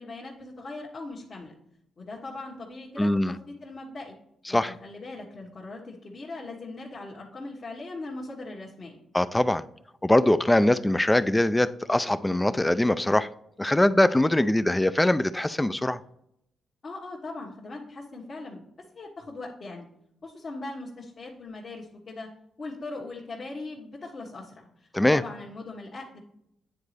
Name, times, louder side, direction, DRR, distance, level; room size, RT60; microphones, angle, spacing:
voice 1, 0.0-1.5 2.0-4.1 4.5-9.0 16.8-18.6 18.9-19.9 20.2-22.3 22.6-26.2, left 2 dB, 50° left, -6 dB, 1.5 m, -40 dB
voice 2, 3.0-3.3 4.5-4.7 9.1-9.6 10.0-13.3 13.6-16.0 24.9-25.2, left 1 dB, 10° left, 14 dB, 0.4 m, -22 dB
9.4 x 4.0 x 3.3 m, 0.76 s
cardioid pair, 70°, 0 cm